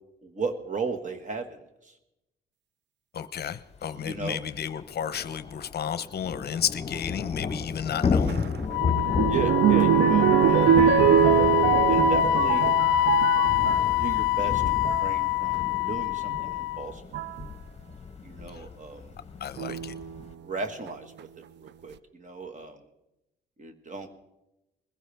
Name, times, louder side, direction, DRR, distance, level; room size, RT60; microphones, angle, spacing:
voice 1, 0.2-1.6 4.0-4.4 8.1-8.3 9.3-11.1 11.9-12.7 14.0-17.0 18.2-19.0 19.6-19.7 20.4-21.3 21.6-22.8 23.6-24.1, right 4 dB, 40° right, 7 dB, 1.7 m, -36 dB
voice 2, 3.1-8.5 18.5-18.7 19.4-19.9, left 8 dB, 55° left, 13 dB, 0.7 m, -32 dB
Thunder / Rain, 3.7-3.8 4.1-4.2 4.5-20.3, left 5 dB, 35° left, 1.1 m, -33 dB
sound 1, 8.3-13.9 14.6-15.1 16.3-16.4 17.1-17.4 19.6-20.2 20.9-21.0 21.2-21.3, right 10 dB, 60° right, 0.5 m, -22 dB
Wind instrument woodwind instrument, 8.7-16.9, left 24 dB, 85° left, 0.4 m, -25 dB
21.0 x 15.5 x 3.5 m, 0.93 s
cardioid pair, 90°, 20 cm